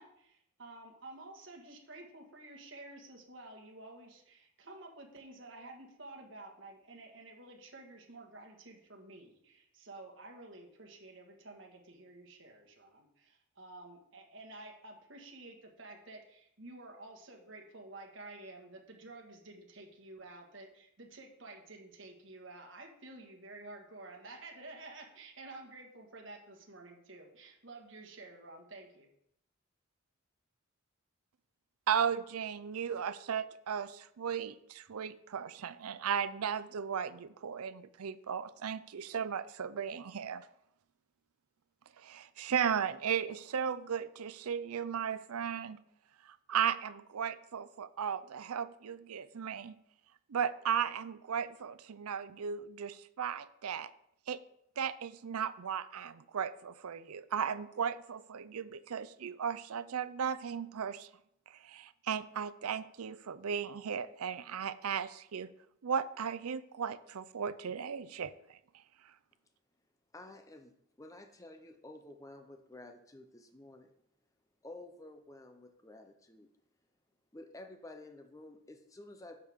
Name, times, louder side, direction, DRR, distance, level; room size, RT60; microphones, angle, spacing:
voice 1, 0.0-29.1, right 2 dB, 60° right, 1 dB, 1.6 m, -51 dB
voice 2, 31.9-40.5 42.0-45.8 46.2-49.8 50.3-53.9 54.3-54.4 54.8-61.1 61.5-65.5 65.8-68.6, right 7 dB, 90° right, 14 dB, 0.5 m, -36 dB
voice 3, 70.1-73.9 74.6-76.5 77.3-79.5, left 2 dB, 15° left, 5 dB, 0.6 m, -51 dB
10.5 x 6.4 x 3.6 m, 0.75 s
head